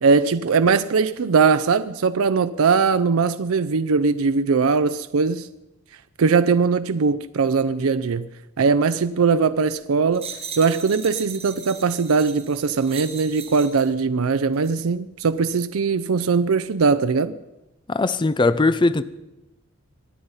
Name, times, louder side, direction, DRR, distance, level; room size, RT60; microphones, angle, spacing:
voice 1, 0.0-5.5 6.2-8.3 8.6-10.3 10.6-17.3, right 5 dB, 80° right, 0.5 m, -20 dB
sound 1, 10.1-13.9 14.5-14.7, right 6 dB, 30° right, 1.9 m, -38 dB
voice 2, 17.9-19.0, left 3 dB, 20° left, 0.5 m, -19 dB
24.5 x 9.6 x 5.5 m
head